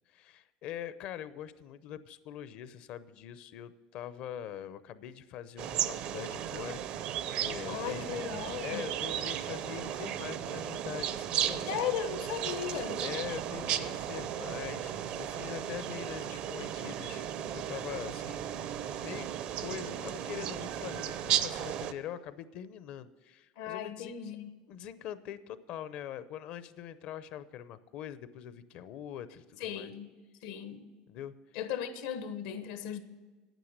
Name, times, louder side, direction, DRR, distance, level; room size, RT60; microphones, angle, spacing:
voice 1, 0.1-11.7 13.0-18.6 19.0-19.3 19.6-24.1 24.7-29.9 31.1-31.3, left 10 dB, 55° left, 0.7 m, -43 dB
sound 1, 5.6-21.9, right 10 dB, 55° right, 0.6 m, -35 dB
voice 2, 7.7-8.8 11.7-13.0 23.6-24.5 29.6-30.1 30.4-30.8 31.5-33.0, left 9 dB, 80° left, 1.1 m, -36 dB
9.4 x 9.1 x 6.6 m
supercardioid pair, 130°, 2 cm